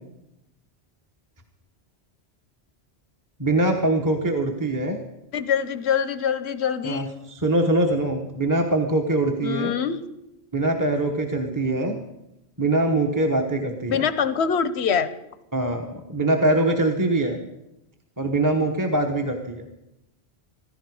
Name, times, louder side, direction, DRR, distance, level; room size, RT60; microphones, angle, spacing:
voice 1, 3.4-5.0 6.8-9.7 10.5-12.0 12.6-14.0 15.5-17.4 18.2-19.7, right 2 dB, 20° right, 2 dB, 1.1 m, -23 dB
voice 2, 5.3-7.2 9.4-10.0 13.9-15.1, left 7 dB, 85° left, 14 dB, 1.1 m, -24 dB
15.5 x 14.0 x 4.8 m, 0.89 s
omnidirectional pair, 1.1 m